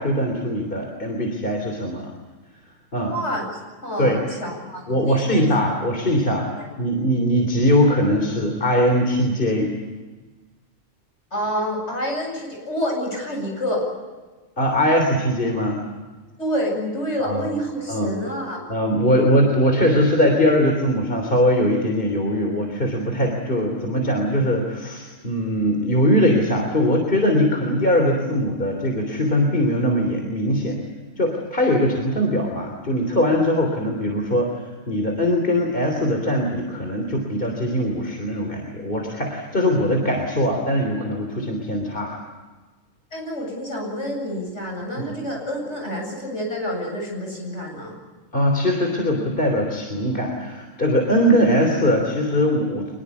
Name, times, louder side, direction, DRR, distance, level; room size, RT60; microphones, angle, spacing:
voice 1, 0.0-2.1 2.9-3.1 4.0-4.2 4.9-6.5 6.8-9.8 14.6-15.8 17.2-17.5 17.9-18.2 18.7-30.8 31.2-42.2 45.0-45.1 48.3-52.9, equal, 40° left, 2 dB, 3.6 m, -21 dB
voice 2, 3.1-5.4 6.5-6.7 11.3-13.9 16.4-18.6 43.1-47.9, equal, 60° left, 1 dB, 8.4 m, -28 dB
24.5 x 22.0 x 8.4 m, 1.3 s
omnidirectional pair, 1.4 m